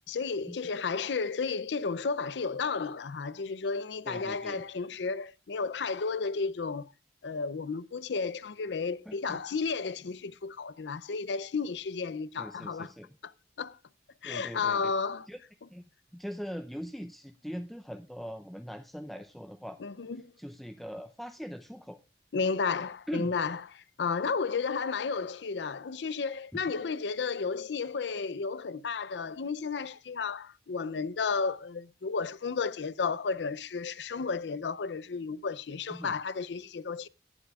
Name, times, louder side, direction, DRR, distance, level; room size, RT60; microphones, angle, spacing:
voice 1, 0.1-6.9 7.2-12.9 13.2-13.3 13.6-13.8 14.2-15.3 19.8-20.3 22.3-37.1, left 5 dB, 80° left, 0.5 m, -33 dB
voice 2, 4.1-4.6 9.1-9.4 12.4-13.1 14.2-14.9 15.3-15.4 15.7-15.8 16.1-19.8 20.4-22.0 23.1-23.4 26.5-26.6 35.9-36.2, equal, ahead, 0.5 m, -41 dB
18.0 x 11.5 x 2.4 m
head